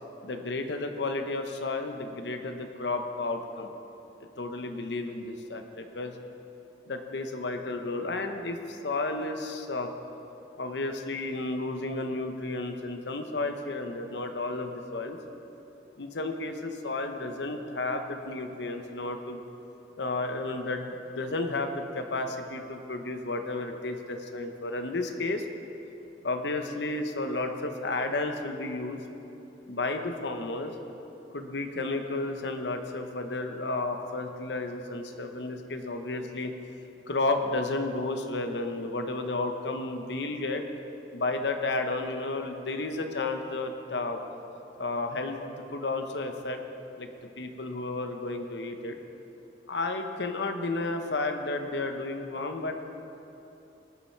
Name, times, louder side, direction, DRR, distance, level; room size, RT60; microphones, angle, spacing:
voice 1, 0.2-3.7 4.4-6.1 6.9-9.9 10.6-15.2 16.0-19.4 20.0-25.4 26.2-29.0 29.7-30.7 31.3-36.5 37.1-40.6 41.1-44.2 44.8-45.4 45.7-46.6 47.0-47.1 47.4-49.0 49.7-52.8, left 2 dB, 80° left, 5 dB, 0.9 m, -32 dB
19.0 x 7.3 x 4.6 m, 3.0 s
head